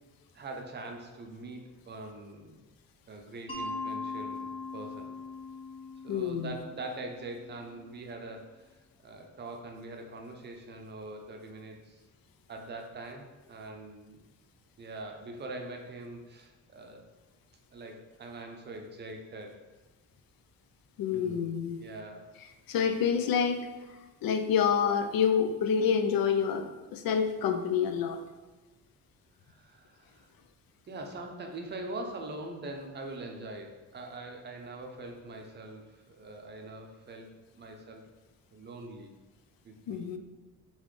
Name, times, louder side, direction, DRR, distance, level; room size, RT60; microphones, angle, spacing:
voice 1, 0.3-2.6 3.1-5.1 6.0-8.7 9.0-12.0 12.5-14.2 14.8-17.1 17.7-19.6 21.1-22.3 29.5-30.3 30.9-38.0 38.5-39.1 39.6-40.1, right 2 dB, 30° right, 3 dB, 0.5 m, -43 dB
Mallet percussion, 3.5-8.3, left 3 dB, 15° left, 0.7 m, -41 dB
voice 2, 6.1-6.5 21.0-21.8 22.7-23.7 24.2-28.2 39.9-40.2, left 7 dB, 75° left, 7 dB, 0.5 m, -27 dB
4.0 x 3.7 x 3.1 m, 1.2 s
cardioid pair, 150°, 35 cm